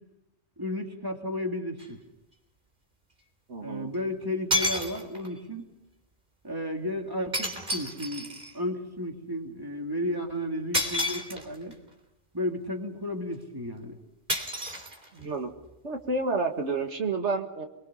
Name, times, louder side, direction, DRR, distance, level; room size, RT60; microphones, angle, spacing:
voice 1, 0.6-2.0 3.6-5.7 6.4-11.7 12.3-14.0, left 1 dB, 20° right, 2 dB, 2.8 m, -33 dB
sound 1, 1.8-1.9 3.9-4.0 4.5-5.4 7.3-8.6 10.7-11.7 14.3-15.4, equal, 45° right, 3.7 m, -30 dB
voice 2, 3.5-3.9 15.1-15.5 15.8-17.6, right 3 dB, 80° right, 4 dB, 2.1 m, -30 dB
28.0 x 22.0 x 5.6 m, 0.93 s
omnidirectional pair, 1.2 m